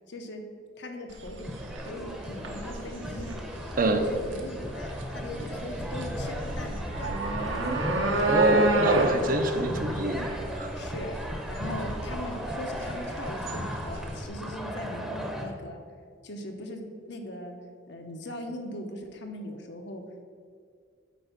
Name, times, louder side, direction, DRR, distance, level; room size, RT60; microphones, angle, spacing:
voice 1, 0.1-0.4 0.8-3.4 3.9-7.6 10.4-10.5 10.7-11.2 11.5-15.8 16.2-16.8 17.1-17.5 17.9-20.0, left 1 dB, 60° left, 4 dB, 0.8 m, -40 dB
sound 1, 1.1-14.2, right 1 dB, 75° right, 1.1 m, -31 dB
sound 2, 1.4-15.4, equal, ahead, 0.8 m, -36 dB
voice 2, 8.3-10.7, right 2 dB, 45° right, 6 dB, 0.6 m, -25 dB
8.4 x 4.5 x 5.8 m, 2.1 s
head